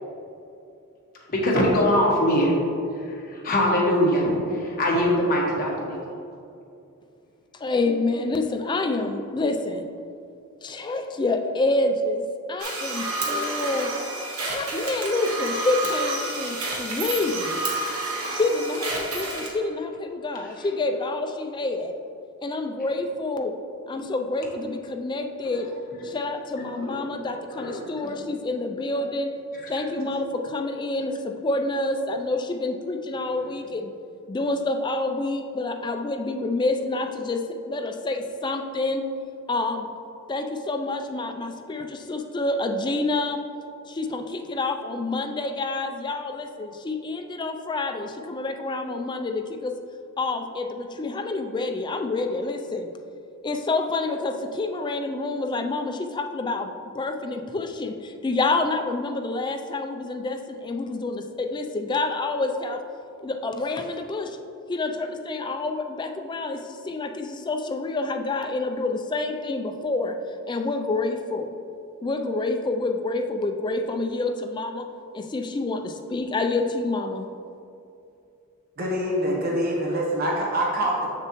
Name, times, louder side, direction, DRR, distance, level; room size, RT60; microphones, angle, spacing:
voice 1, 1.3-2.5 3.4-4.3 4.6-6.0 26.5-26.9 27.5-27.8, equal, 45° left, -3 dB, 1.3 m, -22 dB
voice 2, 7.5-9.9 10.6-14.0 14.4-17.6 18.3-21.9 22.4-23.6 23.9-25.7 26.0-29.4 29.7-33.9 34.3-39.2 39.5-39.9 40.3-43.4 43.9-49.8 50.2-52.9 53.4-62.8 63.2-64.4 64.7-70.2 70.5-71.6 72.0-74.9 75.1-77.3, left 2 dB, 20° left, 5 dB, 0.3 m, -28 dB
sound 1, 12.6-19.5, right 2 dB, 90° right, 1.3 m, -30 dB
voice 3, 78.8-81.1, equal, 45° right, -3 dB, 0.9 m, -25 dB
6.8 x 6.6 x 3.0 m, 2.6 s
head